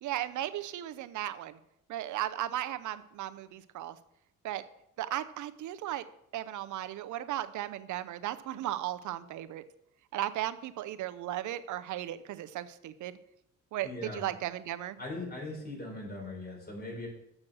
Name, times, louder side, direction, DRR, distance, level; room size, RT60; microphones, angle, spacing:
voice 1, 0.0-1.6 1.9-4.0 4.4-4.6 5.0-6.0 6.3-9.6 10.1-13.1 13.7-13.9 14.1-15.0, right 13 dB, 75° right, 12 dB, 0.7 m, -36 dB
voice 2, 13.8-14.3 15.0-17.1, left 2 dB, 30° left, -2 dB, 4.2 m, -40 dB
7.4 x 6.3 x 6.3 m, 0.78 s
cardioid pair, 90°, 30 cm